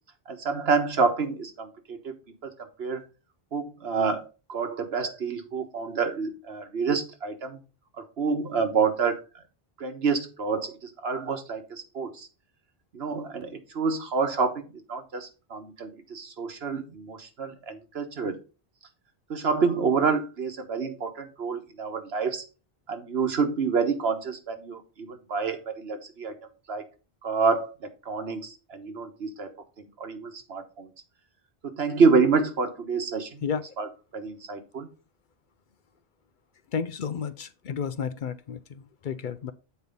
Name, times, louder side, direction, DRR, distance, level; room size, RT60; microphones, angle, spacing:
voice 1, 0.3-2.2 2.4-2.5 2.8-3.0 3.5-7.6 8.0-9.2 9.8-12.3 12.9-18.4 19.3-22.4 22.9-26.3 26.7-26.8 27.2-27.7 28.0-30.9 31.6-33.4 33.8-33.9 34.1-34.9, right 5 dB, 80° right, 1.5 m, -28 dB
voice 2, 36.7-39.5, left 6 dB, 60° left, 0.7 m, -32 dB
8.0 x 4.5 x 5.2 m
omnidirectional pair, 1.0 m